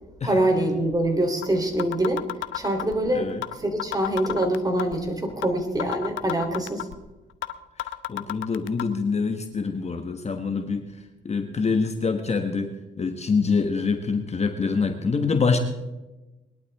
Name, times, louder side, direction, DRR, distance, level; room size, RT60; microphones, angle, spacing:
voice 1, 0.2-2.2 2.5-6.9, right 1 dB, 20° right, 4 dB, 3.5 m, -24 dB
sound 1, 0.9-1.0 1.4-1.5 1.8-3.0 3.4-3.5 3.8-5.0 5.4-5.5 5.8-7.0 7.4-7.5 7.8-8.8, left 12 dB, 75° left, 0.9 m, -30 dB
voice 2, 7.8-10.9 11.2-15.6, left 4 dB, 35° left, 6 dB, 1.4 m, -25 dB
21.5 x 12.0 x 3.6 m, 1.1 s
cardioid pair, 90°, 20 cm